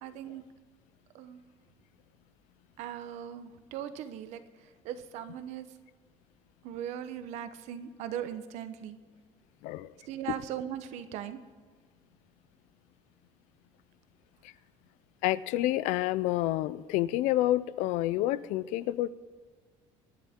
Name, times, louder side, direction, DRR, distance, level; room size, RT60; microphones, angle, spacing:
voice 1, 0.0-0.4 1.1-1.4 2.8-5.7 6.6-9.0 10.0-11.4, right 10 dB, 65° right, 11 dB, 1.0 m, -39 dB
voice 2, 15.2-19.1, left 15 dB, 75° left, 18 dB, 0.5 m, -28 dB
23.0 x 10.5 x 3.7 m, 1.5 s
cardioid pair, 155°, 13 cm